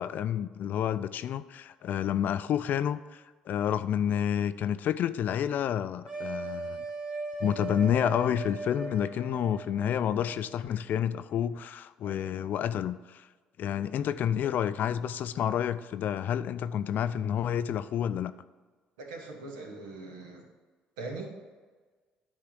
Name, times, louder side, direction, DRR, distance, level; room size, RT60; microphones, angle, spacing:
voice 1, 0.0-6.8 7.4-13.3 13.6-18.3, left 9 dB, 55° left, 14 dB, 0.4 m, -29 dB
sound 1, 6.0-10.5, right 3 dB, 25° right, 1.4 m, -38 dB
voice 2, 19.0-20.4 21.0-21.3, right 3 dB, 80° right, 2 dB, 1.3 m, -41 dB
9.9 x 3.6 x 6.6 m, 1.4 s
hypercardioid pair, 55°, 4 cm